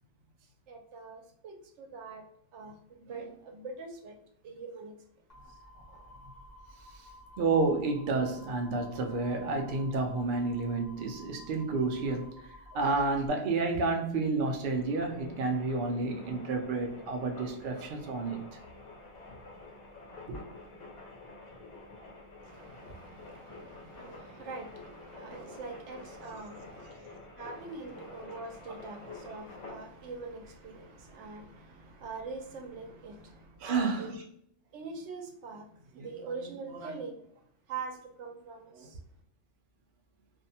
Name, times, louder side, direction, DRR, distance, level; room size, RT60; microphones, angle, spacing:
voice 1, 0.7-2.3 2.5-5.6 12.0-12.3 12.7-13.5 22.4-34.2 34.7-39.0, right 4 dB, 80° right, 0.9 m, -44 dB
sound 1, 5.3-13.3, left 1 dB, 40° left, 0.9 m, -53 dB
voice 2, 7.4-12.3 12.7-18.4 20.3-20.4 25.3-25.6 33.6-34.1, right 3 dB, 60° right, 0.6 m, -30 dB
sound 2, 14.4-33.8, left 2 dB, 85° left, 1.0 m, -49 dB
2.6 x 2.1 x 2.7 m
omnidirectional pair, 1.2 m